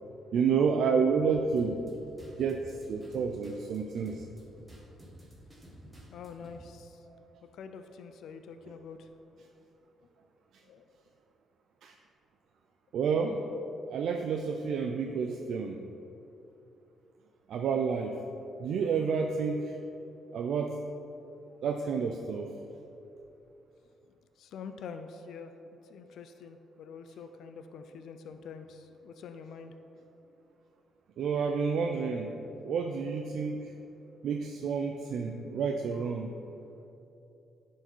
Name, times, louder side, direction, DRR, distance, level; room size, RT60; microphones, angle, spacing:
voice 1, 0.3-1.8 2.4-4.2 7.1-7.2 11.8-11.9 12.9-13.4 13.9-15.8 17.5-18.2 18.6-19.8 20.3-20.8 21.6-22.5 31.2-32.3 32.6-33.7 34.2-36.3, right 5 dB, 65° right, 3 dB, 0.4 m, -30 dB
sound 1, 1.6-6.6, equal, 10° right, 1.6 m, -52 dB
voice 2, 6.1-7.0 7.5-9.1 10.7-10.8 24.4-25.5 25.9-29.7, left 6 dB, 70° left, 8 dB, 0.4 m, -46 dB
10.5 x 4.6 x 4.5 m, 2.9 s
cardioid pair, 140°, 0 cm